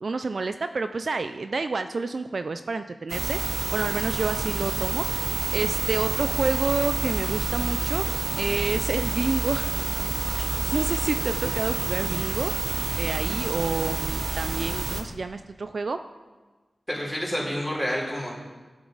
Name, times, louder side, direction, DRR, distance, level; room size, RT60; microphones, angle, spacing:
voice 1, 0.0-3.4 3.7-5.2 5.5-8.0 8.4-9.8 10.7-12.5 13.0-16.0, right 3 dB, 60° right, 9 dB, 0.4 m, -29 dB
sound 1, 3.1-15.0, right 3 dB, 90° right, 0.8 m, -28 dB
voice 2, 16.9-18.3, equal, ahead, -5 dB, 3.9 m, -28 dB
14.0 x 7.1 x 4.0 m, 1.3 s
wide cardioid pair, 75°, 0 cm